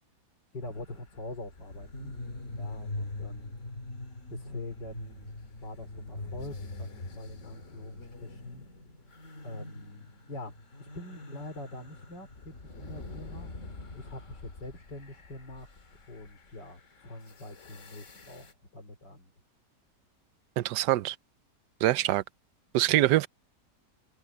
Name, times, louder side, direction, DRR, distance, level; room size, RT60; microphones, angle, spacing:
voice 1, 0.5-2.2 2.6-3.5 4.3-5.3 5.6-8.6 9.4-13.5 13.9-15.7 16.1-19.3, left 1 dB, 85° left, 5.1 m, -44 dB
sound 1, 0.6-18.5, left 2 dB, 45° left, 2.4 m, -44 dB
voice 2, 20.6-21.2 21.8-22.2 22.7-23.3, right 15 dB, 80° right, 1.2 m, -24 dB
omnidirectional pair, 1.8 m